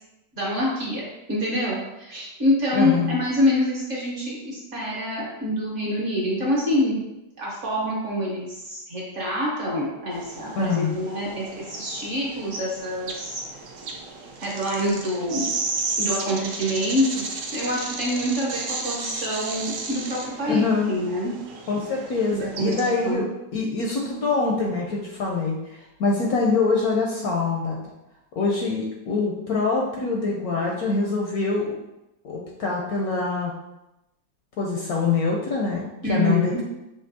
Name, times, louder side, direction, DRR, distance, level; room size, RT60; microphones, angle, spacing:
voice 1, 0.3-7.0 7.4-13.4 14.4-15.5 16.0-17.2 17.5-21.3 22.3-23.2 36.0-36.6, equal, 50° right, -5 dB, 1.1 m, -26 dB
voice 2, 2.7-3.2 10.6-11.0 20.5-20.9 21.7-23.3 23.5-27.8 28.4-31.8 32.2-33.5 34.6-36.6, left 4 dB, 70° left, -1 dB, 0.9 m, -24 dB
sound 1, 10.1-23.1, right 3 dB, 80° right, 0.7 m, -34 dB
5.7 x 2.6 x 2.6 m, 0.92 s
omnidirectional pair, 1.9 m